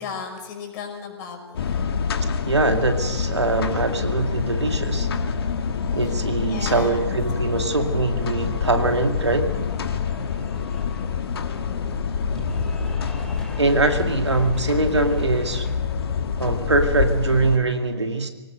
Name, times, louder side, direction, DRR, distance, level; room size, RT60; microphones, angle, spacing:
voice 1, 0.0-1.7 6.1-6.2 6.4-7.0, left 6 dB, 40° left, 4 dB, 5.6 m, -35 dB
sound 1, 1.5-17.6, left 6 dB, 60° left, 1.6 m, -26 dB
voice 2, 2.5-5.1 5.9-9.5 13.6-15.7 16.4-18.3, right 3 dB, 85° right, 6 dB, 2.2 m, -22 dB
Cheering / Applause, 8.1-15.8, left 3 dB, 5° left, 2.5 m, -44 dB
25.0 x 18.5 x 6.6 m, 1.2 s
figure-of-eight pair, 120°, 14 cm